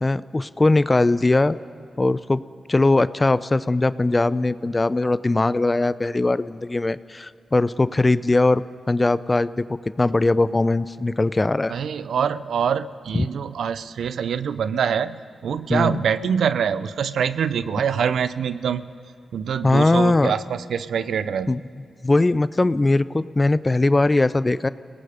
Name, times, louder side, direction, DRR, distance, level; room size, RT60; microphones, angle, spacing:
voice 1, 0.0-1.6 2.0-2.4 2.7-9.6 10.0-11.7 13.1-13.3 15.7-16.0 19.6-20.3 21.5-21.6 22.0-24.7, left 2 dB, 30° left, 16 dB, 0.6 m, -20 dB
voice 2, 11.7-18.9 19.3-21.6, right 7 dB, 85° right, 14 dB, 0.6 m, -25 dB
29.0 x 18.0 x 5.1 m, 2.5 s
cardioid pair, 55°, 0 cm